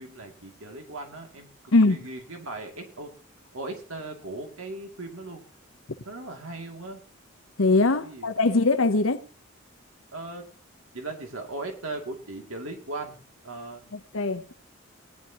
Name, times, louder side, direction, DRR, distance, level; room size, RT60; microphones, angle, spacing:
voice 1, 0.0-1.5 1.9-3.1 3.5-5.4 6.1-7.0 8.0-8.3 10.1-10.5 10.9-13.8, right 2 dB, 85° right, 2.6 m, -38 dB
voice 2, 7.6-9.2 14.1-14.5, left 3 dB, 75° left, 0.9 m, -21 dB
19.5 x 11.0 x 3.0 m
head